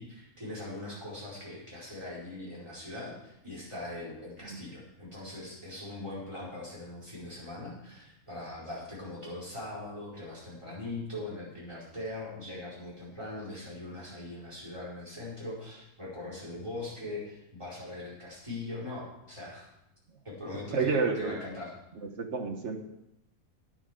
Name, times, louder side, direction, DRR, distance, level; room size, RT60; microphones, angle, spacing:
voice 1, 0.0-19.7 20.2-21.7, left 2 dB, 20° right, -6 dB, 4.8 m, -41 dB
voice 2, 20.7-21.3 22.0-22.8, right 4 dB, 50° right, 5 dB, 1.4 m, -29 dB
9.8 x 9.5 x 5.2 m, 0.85 s
omnidirectional pair, 1.6 m